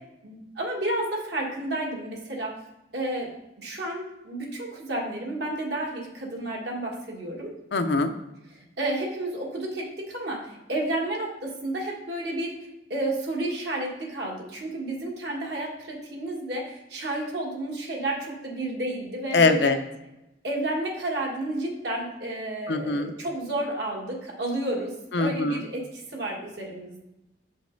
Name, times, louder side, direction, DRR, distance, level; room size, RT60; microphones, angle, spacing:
voice 1, 0.2-2.6 2.9-3.3 3.6-7.5 8.8-19.7 20.4-27.0, right 1 dB, 60° right, -1 dB, 1.6 m, -31 dB
voice 2, 7.7-8.1 19.3-19.8 22.7-23.1 25.1-25.6, left 3 dB, 65° left, 7 dB, 0.6 m, -22 dB
7.4 x 5.2 x 3.9 m, 0.93 s
head